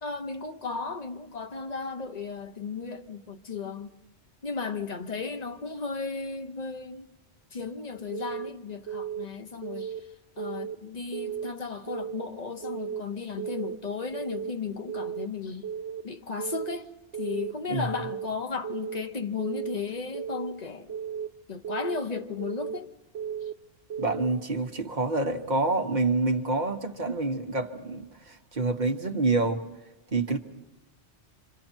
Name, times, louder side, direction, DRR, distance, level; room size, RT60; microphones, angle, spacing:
voice 1, 0.0-3.9 4.4-7.1 7.5-10.0 10.4-15.7 16.0-16.9 17.2-20.9 21.5-22.9, left 5 dB, 40° left, 1.0 m, -35 dB
Keyboard (musical) / Alarm, 8.1-8.5 8.9-9.2 9.6-10.0 10.4-10.8 11.1-11.5 11.9-12.3 12.6-13.0 13.4-13.8 14.1-14.5 14.9-15.3 15.6-16.0 16.4-16.8 17.1-17.5 17.9-18.3 18.6-19.0 19.4-19.8 20.1-20.5 20.9-21.3 21.6-22.0 22.4-22.8 23.1-23.5 23.9-24.3, right 7 dB, 80° right, 1.2 m, -35 dB
voice 2, 24.0-29.6 30.1-30.4, right 3 dB, 40° right, 1.3 m, -27 dB
26.5 x 26.5 x 4.5 m
omnidirectional pair, 1.2 m